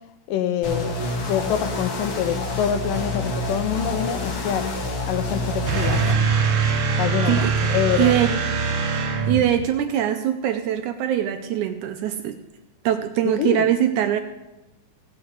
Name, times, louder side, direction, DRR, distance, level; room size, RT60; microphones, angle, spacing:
voice 1, 0.3-1.0 1.3-4.7 5.0-6.3 7.0-8.1 13.3-13.7, left 9 dB, 80° left, 10 dB, 2.5 m, -26 dB
sound 1, 0.6-6.1, left 2 dB, 50° left, 2.0 m, -27 dB
sound 2, 5.7-9.6, right 5 dB, 55° right, 1.4 m, -22 dB
voice 2, 7.9-8.3 9.3-12.4 12.9-14.2, right 11 dB, 75° right, 8 dB, 1.9 m, -22 dB
16.0 x 6.1 x 8.0 m, 1.0 s
omnidirectional pair, 3.9 m